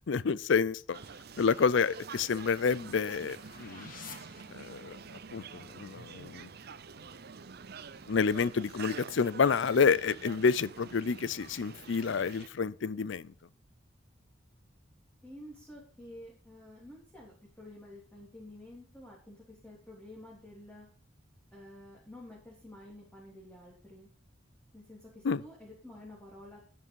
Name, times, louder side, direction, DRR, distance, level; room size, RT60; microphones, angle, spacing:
voice 1, 0.1-1.0 1.4-3.9 4.5-5.0 5.3-6.5 8.1-13.3 25.2-25.4, left 5 dB, 65° left, 0.5 m, -29 dB
sound 1, 0.9-12.5, right 5 dB, 55° right, 0.7 m, -47 dB
sound 2, 1.8-5.2, left 5 dB, 45° left, 1.8 m, -52 dB
voice 2, 15.2-20.9 21.5-24.1 24.7-26.6, left 1 dB, 10° left, 3.4 m, -50 dB
11.0 x 9.7 x 5.4 m
head